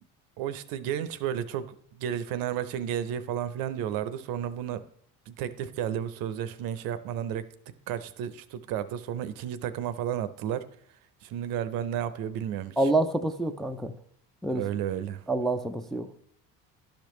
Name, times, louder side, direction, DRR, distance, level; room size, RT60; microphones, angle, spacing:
voice 1, 0.4-1.7 2.0-4.8 5.3-7.4 7.9-10.7 11.2-12.7 14.5-15.2, right 10 dB, 75° right, 13 dB, 0.7 m, -32 dB
voice 2, 12.8-13.9 14.4-14.6 15.3-16.1, right 2 dB, ahead, 5 dB, 0.4 m, -27 dB
11.5 x 5.1 x 3.1 m, 0.67 s
supercardioid pair, 100°, 35 cm